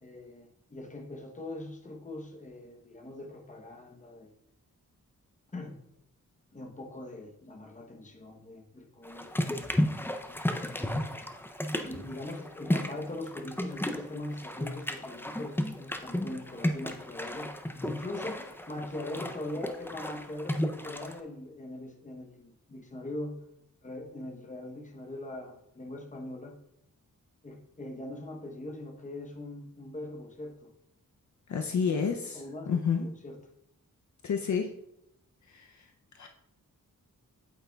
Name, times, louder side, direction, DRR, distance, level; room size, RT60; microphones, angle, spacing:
voice 1, 0.0-4.3 5.5-5.8 6.5-9.8 10.2-10.4 10.8-11.2 11.8-23.4 23.8-26.6 27.4-30.7 31.7-33.4, left 1 dB, 25° left, 3 dB, 0.8 m, -41 dB
sound 1, 9.0-21.2, left 1 dB, 5° left, 0.4 m, -33 dB
voice 2, 31.5-33.1 34.2-34.7 35.5-35.7 36.2-36.3, left 6 dB, 60° left, 4 dB, 0.5 m, -30 dB
8.8 x 8.1 x 2.3 m, 0.82 s
wide cardioid pair, 150°, 33 cm